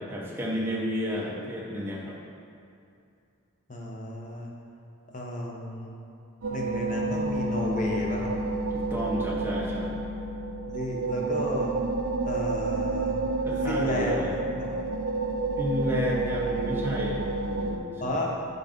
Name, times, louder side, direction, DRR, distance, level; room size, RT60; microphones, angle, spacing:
voice 1, 0.0-2.2 8.7-10.0 13.4-14.4 15.6-18.2, equal, 10° right, -4 dB, 0.7 m, -32 dB
voice 2, 3.7-4.5 5.1-6.0 6.5-8.3 10.7-11.7 12.3-13.2 13.7-14.7 18.0-18.3, left 1 dB, 35° left, -1 dB, 0.8 m, -32 dB
sound 1, 6.4-17.8, right 2 dB, 60° right, 0.5 m, -29 dB
5.8 x 4.0 x 5.1 m, 2.6 s
head